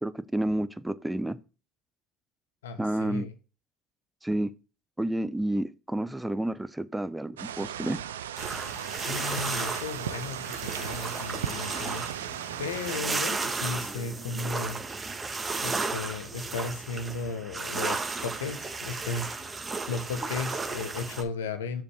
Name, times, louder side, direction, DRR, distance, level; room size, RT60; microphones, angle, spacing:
voice 1, 0.0-1.4 2.8-3.3 4.2-4.5 5.0-8.0, right 1 dB, 10° right, 0.6 m, -30 dB
voice 2, 2.6-3.3 9.1-14.8 15.6-19.6 19.9-21.8, left 4 dB, 90° left, 1.0 m, -35 dB
sound 1, 7.4-13.0, right 10 dB, 90° right, 0.4 m, -36 dB
sound 2, 8.4-21.2, right 4 dB, 25° right, 1.6 m, -34 dB
6.9 x 5.1 x 4.8 m
hypercardioid pair, 70°, 0 cm